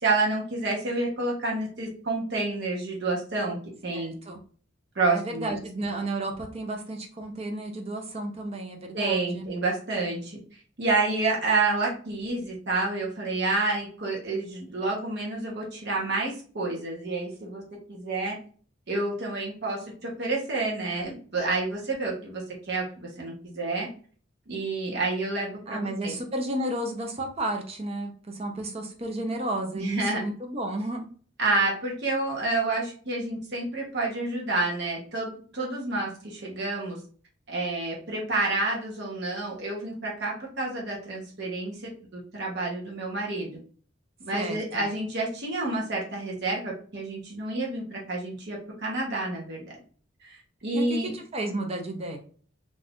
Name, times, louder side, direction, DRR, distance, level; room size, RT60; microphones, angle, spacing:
voice 1, 0.0-3.6 3.8-4.1 4.9-5.5 8.9-17.6 17.9-18.3 18.9-23.9 24.5-26.2 29.7-30.2 31.4-37.0 37.5-43.6 44.2-49.8 50.2-51.1, right 2 dB, 55° right, -2 dB, 0.9 m, -29 dB
voice 2, 3.9-4.4 5.1-9.5 25.7-31.1 44.3-44.9 50.7-52.2, right 1 dB, 30° right, 3 dB, 0.5 m, -32 dB
2.6 x 2.4 x 3.5 m, 0.43 s
head